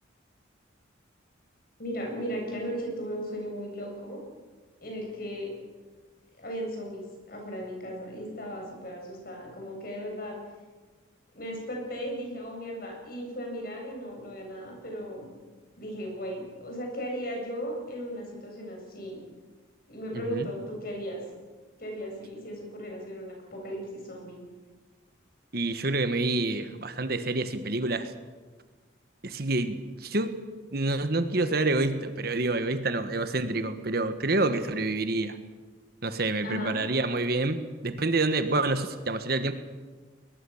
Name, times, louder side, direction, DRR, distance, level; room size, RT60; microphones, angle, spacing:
voice 1, 1.8-4.2 4.8-5.5 6.4-10.4 11.3-15.3 15.8-19.2 19.9-21.2 21.8-24.4 36.4-36.8, equal, 50° left, 1 dB, 7.8 m, -36 dB
voice 2, 20.1-20.5 25.5-28.1 29.2-30.4 30.7-35.4 36.0-39.5, right 2 dB, 50° right, 10 dB, 1.4 m, -28 dB
21.5 x 21.5 x 7.2 m, 1.3 s
head